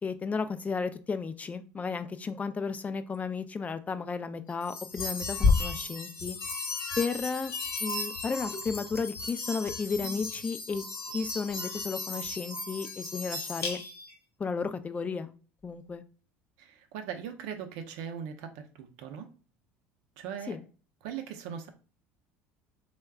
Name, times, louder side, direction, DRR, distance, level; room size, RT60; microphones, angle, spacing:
voice 1, 0.0-6.4 7.0-7.5 7.8-10.8 11.1-13.8 14.4-15.3 15.6-16.0 20.5-20.6, left 5 dB, 20° left, 11 dB, 0.3 m, -33 dB
sound 1, 4.6-14.1, left 4 dB, 45° left, 0.7 m, -33 dB
voice 2, 16.6-19.3 20.2-20.6 21.0-21.7, right 8 dB, 75° right, 6 dB, 0.5 m, -39 dB
3.4 x 2.2 x 2.2 m, 0.37 s
supercardioid pair, 85°, 7 cm